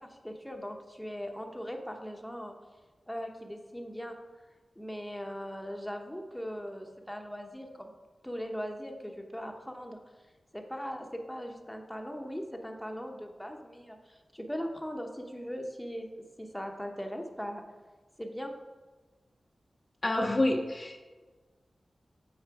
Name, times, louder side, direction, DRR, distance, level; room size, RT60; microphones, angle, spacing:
voice 1, 0.0-2.5 3.1-4.2 4.8-7.9 8.2-10.0 10.5-16.1 16.4-17.6 18.2-18.5, equal, 5° left, 3 dB, 0.9 m, -39 dB
voice 2, 20.0-21.0, left 1 dB, 40° left, 2 dB, 0.6 m, -28 dB
6.5 x 4.4 x 4.7 m, 1.3 s
cardioid pair, 45°, 0 cm